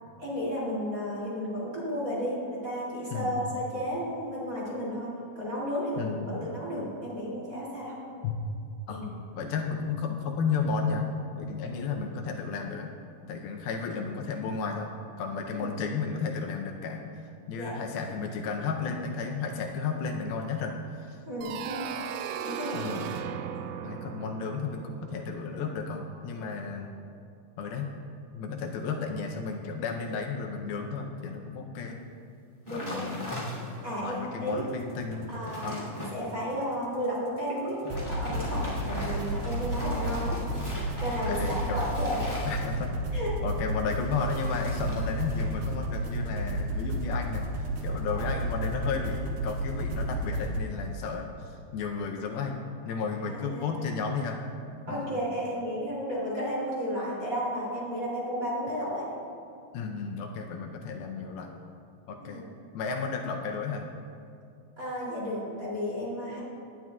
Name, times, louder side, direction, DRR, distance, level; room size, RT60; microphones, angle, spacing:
voice 1, 0.2-5.1 5.3-7.9 8.9-9.1 15.5-15.7 17.5-17.7 21.2-21.9 22.4-22.9 32.7-33.0 33.8-34.7 35.3-37.8 38.1-40.7 41.0-42.4 43.1-43.3 48.1-48.3 53.3-53.8 54.8-59.0 62.3-62.4 64.8-66.4, equal, 25° right, -7 dB, 2.6 m, -33 dB
voice 2, 3.1-3.5 6.0-6.5 8.2-8.4 8.9-11.1 11.4-12.9 13.3-14.9 15.2-17.0 17.5-21.2 22.7-23.1 23.8-26.9 27.6-27.9 28.3-32.0 32.7-33.4 34.0-36.0 41.3-41.8 42.5-42.9 43.4-54.4 54.9-55.1 59.7-61.6 62.1-62.5 62.7-63.9, left 5 dB, 80° left, 3 dB, 2.5 m, -33 dB
sound 1, 21.4-26.1, right 8 dB, 90° right, 2.6 m, -37 dB
sound 2, 32.7-34.0 34.5-34.6 35.0-36.2 37.7-43.0 44.0-45.7 46.0-46.4, left 1 dB, 10° left, 1.9 m, -40 dB
sound 3, 34.5-35.7 37.9-50.6, right 1 dB, 65° right, 2.0 m, -32 dB
18.5 x 11.0 x 2.4 m, 2.4 s
omnidirectional pair, 4.5 m